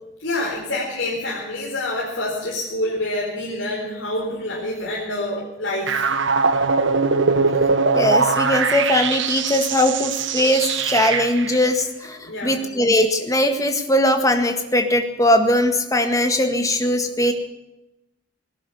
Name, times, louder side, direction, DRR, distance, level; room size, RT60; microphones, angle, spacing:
voice 1, 0.2-6.0 12.2-12.6, left 1 dB, 75° left, -4 dB, 4.2 m, -27 dB
sound 1, 5.9-11.6, right 4 dB, 70° right, 1.2 m, -21 dB
voice 2, 7.9-17.3, left 1 dB, 15° left, 6 dB, 1.8 m, -20 dB
18.5 x 11.0 x 7.0 m, 0.92 s
head